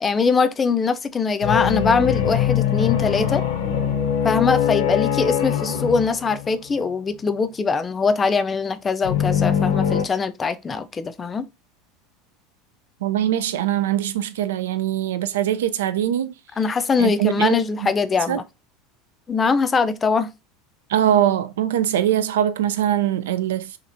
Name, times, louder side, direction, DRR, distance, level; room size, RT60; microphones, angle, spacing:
voice 1, 0.0-3.4 4.2-11.5 16.6-18.4 19.3-20.3, left 5 dB, 25° left, 0.4 m, -22 dB
sound 1, 1.4-6.9 9.0-10.0, left 9 dB, 75° left, 0.6 m, -22 dB
voice 2, 13.0-16.3 17.0-17.6 18.3-18.4 20.9-23.7, right 11 dB, 75° right, 0.3 m, -22 dB
2.9 x 2.5 x 2.6 m
hypercardioid pair, 80°, 0 cm